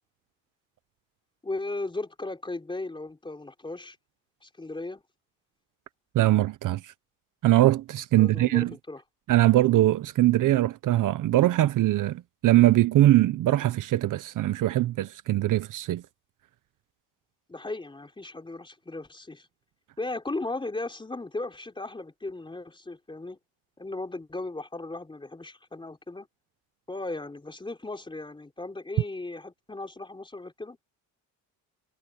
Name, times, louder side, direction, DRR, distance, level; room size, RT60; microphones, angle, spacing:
voice 1, 1.4-4.0 4.4-5.0 8.1-9.0 17.5-19.5 20.0-23.4 23.8-26.3 26.9-30.8, left 2 dB, 15° left, 3.7 m, -36 dB
voice 2, 6.1-6.9 7.4-8.7 9.3-16.0, right 15 dB, 60° right, 0.8 m, -22 dB
cardioid pair, 120°, 37 cm